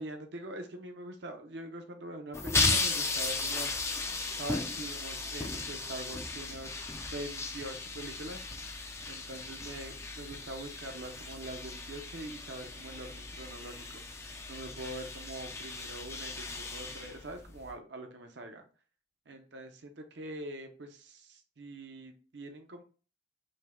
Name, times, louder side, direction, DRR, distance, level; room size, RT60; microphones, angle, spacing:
voice 1, 0.0-3.8 4.4-6.7 7.1-8.4 9.0-14.0 14.5-18.6 19.3-22.8, right 1 dB, 65° right, 5 dB, 0.7 m, -43 dB
sound 1, 2.3-17.7, left 3 dB, 15° left, 0.4 m, -36 dB
5.3 x 2.2 x 3.5 m, 0.37 s
head